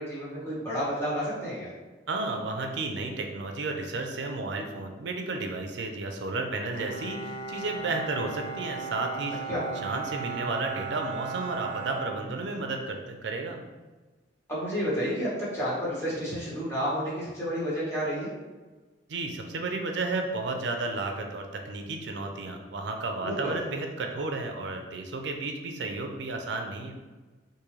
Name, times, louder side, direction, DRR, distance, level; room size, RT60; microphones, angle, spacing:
voice 1, 0.0-1.7 9.5-9.6 14.5-18.3 23.2-23.6, equal, 15° left, -9 dB, 1.3 m, -30 dB
voice 2, 2.1-9.4 9.8-13.6 19.1-27.0, right 3 dB, 70° right, 4 dB, 0.5 m, -32 dB
Bowed string instrument, 6.7-12.9, right 5 dB, 30° left, 0.9 m, -37 dB
3.7 x 2.6 x 3.1 m, 1.3 s
head